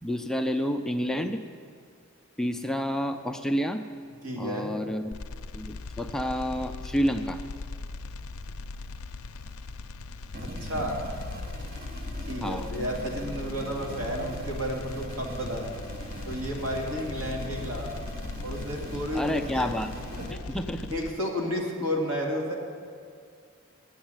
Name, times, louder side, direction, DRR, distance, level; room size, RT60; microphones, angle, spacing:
voice 1, 0.0-1.4 2.4-3.8 4.4-5.1 5.5-7.4 12.4-12.7 19.1-19.9 20.3-20.9, equal, ahead, 6 dB, 0.4 m, -29 dB
voice 2, 4.2-4.7 10.4-11.0 12.3-15.7 16.3-17.9 18.4-19.7 20.1-20.6 20.9-22.5, equal, 80° right, 0 dB, 2.2 m, -32 dB
sound 1, 5.1-21.1, left 3 dB, 85° left, 0.5 m, -40 dB
sound 2, 10.3-20.3, equal, 45° right, 1.1 m, -40 dB
9.7 x 8.0 x 9.0 m, 2.2 s
head